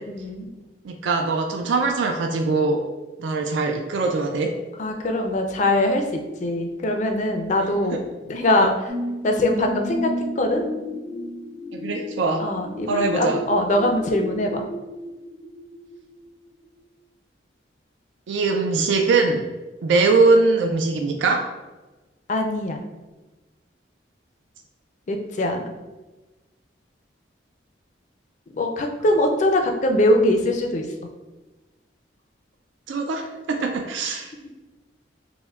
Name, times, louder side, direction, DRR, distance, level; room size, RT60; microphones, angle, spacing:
voice 1, 0.1-0.5 4.8-8.7 9.2-10.6 12.4-14.6 22.3-22.8 25.1-25.7 28.6-30.9, left 1 dB, 40° left, 3 dB, 0.4 m, -22 dB
voice 2, 0.8-2.8 3.2-4.5 7.9-8.0 8.6-8.7 11.7-12.4 12.9-13.4 18.3-19.4 19.8-21.4 32.9-34.3, right 3 dB, 75° right, 3 dB, 0.3 m, -21 dB
sound 1, 8.9-16.3 16.7-16.8, left 1 dB, 40° right, 1.3 m, -33 dB
5.4 x 2.1 x 2.3 m, 1.2 s
head